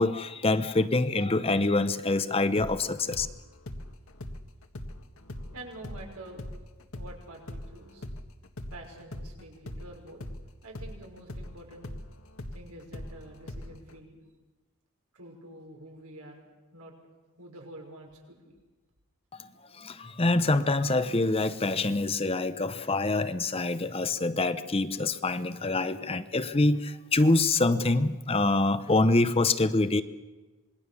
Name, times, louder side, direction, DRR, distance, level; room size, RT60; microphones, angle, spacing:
voice 1, 0.0-3.3 19.7-30.0, left 2 dB, 25° left, 12 dB, 0.8 m, -25 dB
sound 1, 2.6-10.4 10.7-14.0, left 1 dB, 65° left, 1.7 m, -41 dB
voice 2, 5.5-6.5 6.9-8.0 8.7-10.2 10.6-11.9 12.5-14.2 15.1-16.4 16.7-16.9 17.4-18.5, right 1 dB, 85° right, 1 dB, 5.9 m, -47 dB
26.5 x 21.0 x 7.1 m, 1.3 s
head